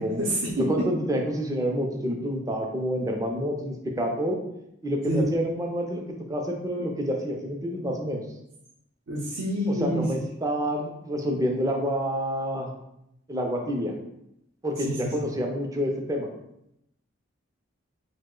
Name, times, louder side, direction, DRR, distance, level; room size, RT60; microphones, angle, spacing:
voice 1, 0.6-4.4 4.8-6.0 6.3-8.2 9.7-12.7 13.3-13.9 14.6-16.3, equal, 15° right, 2 dB, 0.3 m, -28 dB
voice 2, 9.1-10.0 14.8-15.1, right 1 dB, 75° right, -5 dB, 0.5 m, -27 dB
2.9 x 2.0 x 3.6 m, 0.81 s
head